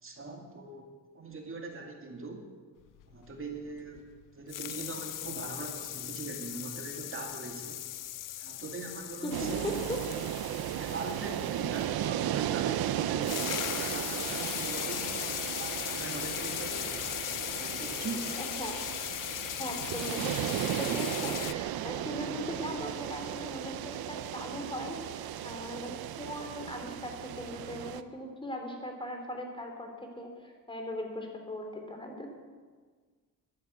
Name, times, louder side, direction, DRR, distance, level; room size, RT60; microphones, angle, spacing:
voice 1, 0.0-2.5 3.1-4.1 4.3-7.8 8.4-9.7 10.2-15.1 15.5-18.3 18.7-18.8, right 3 dB, 35° right, 2 dB, 2.3 m, -42 dB
sound 1, 3.0-4.2 4.5-11.9 12.9-13.0 13.2-21.5, left 14 dB, 60° left, 0.5 m, -38 dB
voice 2, 9.2-10.0 18.4-18.8 19.6-32.3, left 1 dB, 15° left, 3 dB, 3.2 m, -39 dB
sound 2, 9.3-28.0, right 12 dB, 75° right, 0.7 m, -35 dB
12.0 x 10.5 x 8.1 m, 1.5 s
cardioid pair, 100°, 37 cm